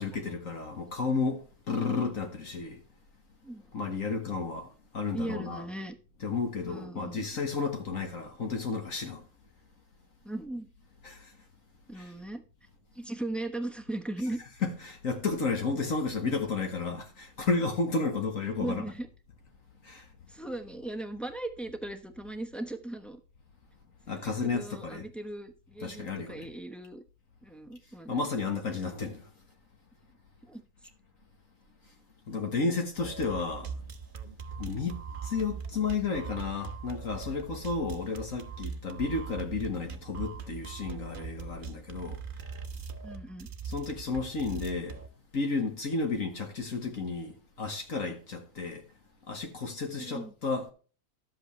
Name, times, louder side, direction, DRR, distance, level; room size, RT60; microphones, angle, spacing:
voice 1, 0.0-2.8 3.7-4.7 4.9-5.7 6.2-9.2 11.0-11.3 12.0-12.1 14.6-18.8 19.8-20.1 24.1-25.1 25.8-26.5 28.1-29.2 32.3-33.7 34.6-42.2 43.6-45.0 45.3-48.8 49.3-50.7, left 4 dB, 45° left, 1.7 m, -32 dB
voice 2, 5.1-6.0 6.7-7.2 10.2-10.7 11.9-12.4 12.9-14.4 16.3-16.4 18.6-19.1 20.3-23.2 24.1-27.0 27.4-28.2 30.4-30.6 43.0-43.5 49.9-50.3, right 1 dB, ahead, 0.4 m, -38 dB
sound 1, 33.0-45.1, right 5 dB, 45° right, 0.7 m, -41 dB
12.0 x 7.9 x 3.1 m
omnidirectional pair, 2.0 m